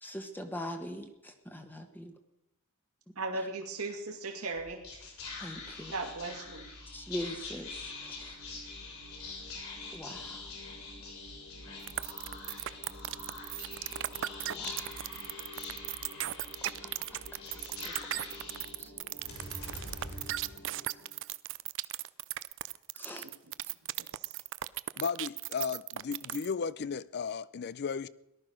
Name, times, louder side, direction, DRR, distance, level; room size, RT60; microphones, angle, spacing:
voice 1, 0.0-2.1 3.3-3.5 5.4-5.9 6.9-8.4 9.9-10.5 14.5-15.0 16.6-18.3 18.8-18.9 19.7-19.9 22.9-23.3, equal, 10° left, 1.2 m, -43 dB
voice 2, 3.2-4.8 5.9-6.6 24.1-24.3, right 3 dB, 80° right, 2.6 m, -37 dB
Whispering, 4.5-21.1, left 3 dB, 70° left, 6.5 m, -44 dB
sound 1, 11.9-26.5, right 14 dB, 60° right, 0.5 m, -36 dB
voice 3, 25.0-28.1, left 6 dB, 50° left, 0.5 m, -35 dB
18.0 x 12.0 x 6.3 m
head